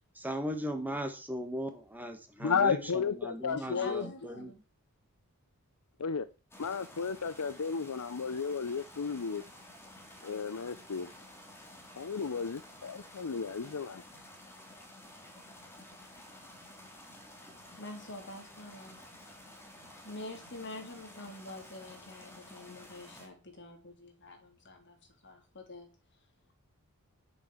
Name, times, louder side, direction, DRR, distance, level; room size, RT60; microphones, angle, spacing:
voice 1, 0.2-4.5, equal, 10° right, 1.9 m, -38 dB
voice 2, 2.4-4.1 6.0-6.3 6.6-9.4 10.2-11.1 12.0-14.0, left 5 dB, 80° left, 0.7 m, -33 dB
voice 3, 3.6-4.6 17.8-19.0 20.0-25.0 25.2-25.9, left 2 dB, 55° left, 3.4 m, -46 dB
sound 1, 6.5-23.3, left 1 dB, 10° left, 3.1 m, -52 dB
10.0 x 7.7 x 6.3 m
head